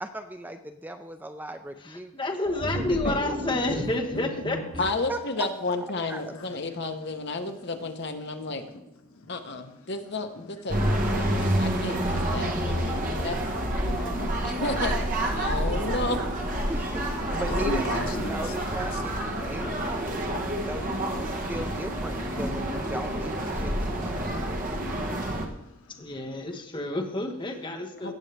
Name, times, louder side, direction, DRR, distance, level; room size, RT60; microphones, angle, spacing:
voice 1, 0.0-2.1 2.7-3.9 4.7-5.5 6.1-6.3 16.7-20.3 20.6-24.2, right 1 dB, 10° right, 0.4 m, -37 dB
voice 2, 1.8-4.6 25.9-28.1, left 2 dB, 20° left, 1.2 m, -30 dB
sound 1, 2.5-4.9, equal, 60° right, 2.6 m, -34 dB
voice 3, 4.8-8.6 9.3-10.8 11.1-13.4 13.8-15.0 15.3-16.2 28.0-28.1, left 2 dB, 50° left, 1.0 m, -32 dB
voice 4, 8.5-9.7 13.8-14.6 17.3-18.5 18.9-19.0 19.4-19.7 20.1-20.7 21.3-21.5 24.8-26.3 28.0-28.1, left 2 dB, 80° left, 1.2 m, -40 dB
sound 2, 10.7-25.5, right 1 dB, 40° right, 1.2 m, -28 dB
17.5 x 7.4 x 3.4 m
head